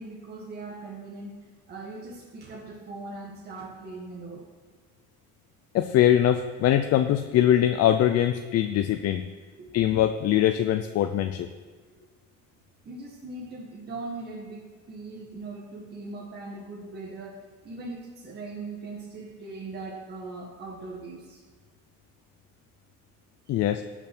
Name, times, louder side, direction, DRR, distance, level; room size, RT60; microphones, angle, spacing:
voice 1, 0.0-4.4 9.5-9.7 12.9-21.4 23.5-23.6, right 3 dB, 35° right, -3 dB, 1.8 m, -40 dB
voice 2, 5.7-9.3 9.7-11.5 23.5-23.8, left 11 dB, 55° left, 8 dB, 0.6 m, -22 dB
17.0 x 6.1 x 6.2 m, 1.5 s
cardioid pair, 150°, 30 cm